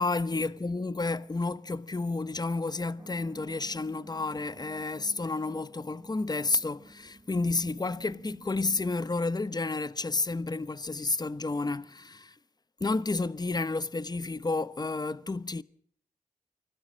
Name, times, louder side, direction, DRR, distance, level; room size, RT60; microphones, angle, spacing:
voice 1, 0.0-12.3 12.8-15.6, left 3 dB, 30° left, 0.9 m, -31 dB
sound 1, 3.0-8.9, right 2 dB, 30° right, 3.7 m, -53 dB
24.5 x 17.0 x 7.5 m
cardioid pair, 50°, 14 cm